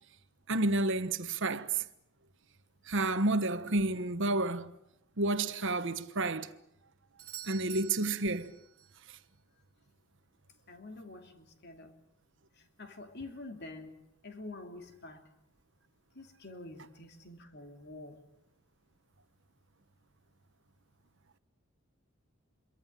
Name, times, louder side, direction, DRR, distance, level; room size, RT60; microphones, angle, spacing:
voice 1, 0.5-1.8 2.9-4.7 5.2-6.5 7.5-8.5, right 2 dB, 60° right, 1.3 m, -30 dB
Doorbell, 7.2-9.0 13.1-13.2, right 12 dB, 85° right, 2.0 m, -48 dB
voice 2, 10.7-11.9 12.6-14.0 14.2-15.3 16.1-18.2, left 2 dB, 50° left, 2.9 m, -47 dB
28.0 x 23.5 x 7.6 m
head